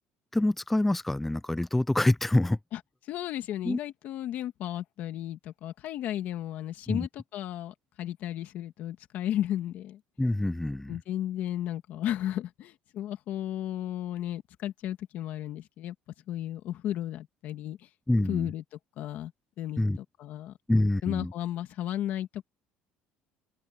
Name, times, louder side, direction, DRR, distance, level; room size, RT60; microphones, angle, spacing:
voice 1, 0.3-2.6 3.6-3.8 6.9-7.1 10.2-11.0 18.1-18.5 19.8-20.0 20.7-21.3, left 1 dB, 5° left, 0.3 m, -26 dB
voice 2, 3.1-10.0 10.9-15.9 16.3-17.8 18.2-18.6 19.0-19.3 19.6-19.8 20.2-22.5, left 12 dB, 50° left, 2.1 m, -34 dB
cardioid pair, 165°, 4 cm